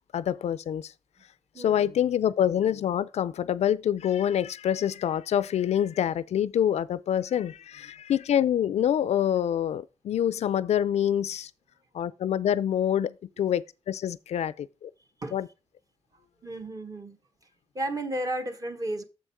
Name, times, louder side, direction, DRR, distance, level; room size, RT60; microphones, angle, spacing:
voice 1, 0.1-0.9 1.6-11.5 11.9-14.9 15.3-15.5, left 10 dB, 85° left, 0.4 m, -26 dB
voice 2, 1.5-1.9 15.2-15.4 16.4-17.2 17.7-19.0, right 1 dB, 30° right, 1.3 m, -33 dB
7.1 x 6.3 x 4.6 m
wide cardioid pair, 100°, 11 cm